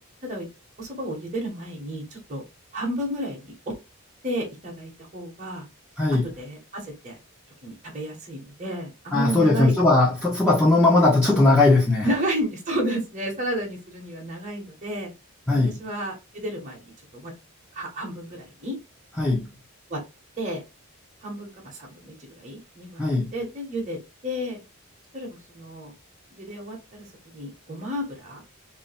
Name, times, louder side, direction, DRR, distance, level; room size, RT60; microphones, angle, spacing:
voice 1, 0.8-2.0 2.3-2.4 2.7-3.7 4.2-5.6 6.4-7.2 7.6-9.7 12.0-15.1 15.5-16.8 17.1-17.3 17.7-18.8 19.9-20.0 20.4-20.6 21.2-23.0 23.3-24.0 24.2-24.6 25.1-25.3 25.5-25.9 26.4-27.1 27.3-28.4, right 1 dB, 35° right, 1.2 m, -31 dB
voice 2, 6.0-6.3 9.1-12.1 15.5-15.8 19.2-19.5 23.0-23.3, left 2 dB, 10° left, 1.0 m, -19 dB
3.3 x 2.8 x 3.4 m
head